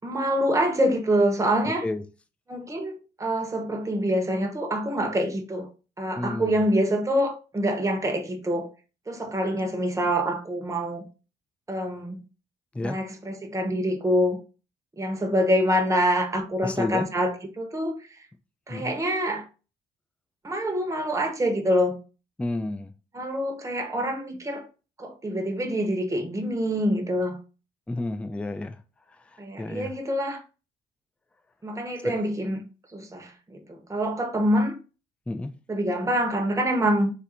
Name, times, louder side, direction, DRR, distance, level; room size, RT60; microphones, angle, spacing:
voice 1, 0.0-1.8 2.5-5.7 6.0-8.7 9.1-11.1 11.7-12.2 12.8-14.4 15.0-18.1 18.7-19.5 20.4-22.0 23.1-24.7 25.0-27.4 29.4-30.4 31.6-32.6 32.9-34.8 35.7-37.1, equal, 15° right, 0.8 m, -26 dB
voice 2, 6.2-6.6 12.7-13.0 16.6-17.1 18.7-18.9 22.4-22.9 27.9-28.8 29.6-29.9 32.0-32.2 35.3-35.5, left 2 dB, 5° left, 0.3 m, -30 dB
3.3 x 2.5 x 4.2 m
cardioid pair, 90°, 20 cm